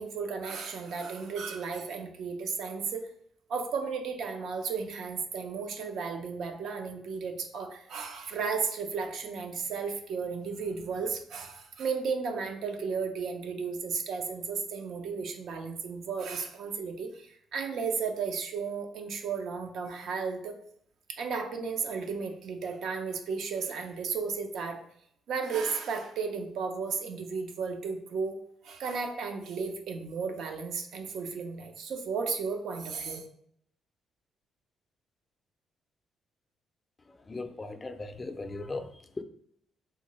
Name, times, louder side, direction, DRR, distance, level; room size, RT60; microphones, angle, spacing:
voice 1, 0.0-3.1 3.5-20.5 21.1-24.8 25.3-28.4 28.6-33.3, right 5 dB, 75° right, 5 dB, 0.5 m, -34 dB
voice 2, 37.3-39.2, left 3 dB, 25° left, 8 dB, 0.4 m, -38 dB
3.6 x 2.2 x 3.0 m, 0.69 s
cardioid pair, 90°, 0 cm